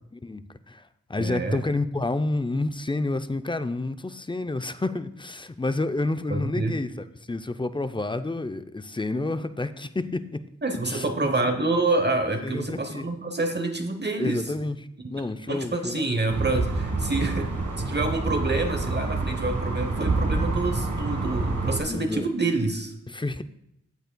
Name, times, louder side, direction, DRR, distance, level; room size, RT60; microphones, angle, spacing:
voice 1, 0.2-0.8 1.1-6.9 7.3-10.4 10.8-11.0 12.4-13.1 14.2-14.8 15.1-16.0 21.9-22.3 23.1-23.4, left 2 dB, 15° left, 11 dB, 0.5 m, -29 dB
voice 2, 1.2-1.6 6.3-6.8 10.6-14.5 15.0-15.1 15.5-17.5 17.9-22.9, right 2 dB, 35° right, 6 dB, 0.9 m, -27 dB
sound 1, 16.3-21.8, right 3 dB, 80° right, 1.7 m, -27 dB
15.5 x 8.0 x 2.2 m, 0.82 s
wide cardioid pair, 55°, 29 cm